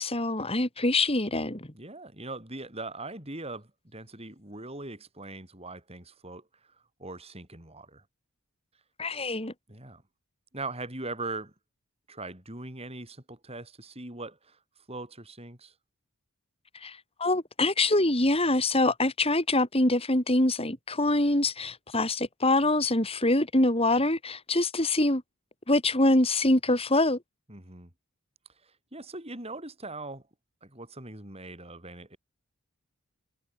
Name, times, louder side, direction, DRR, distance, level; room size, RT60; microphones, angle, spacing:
voice 1, 0.0-1.7 9.0-9.5 16.8-25.2 25.7-27.2, left 2 dB, 25° left, 4.4 m, -25 dB
voice 2, 1.7-8.0 9.7-10.0 10.5-11.5 12.1-14.6 14.9-15.7 27.5-27.9 28.6-30.2 30.6-32.2, right 2 dB, 25° right, 7.0 m, -41 dB
head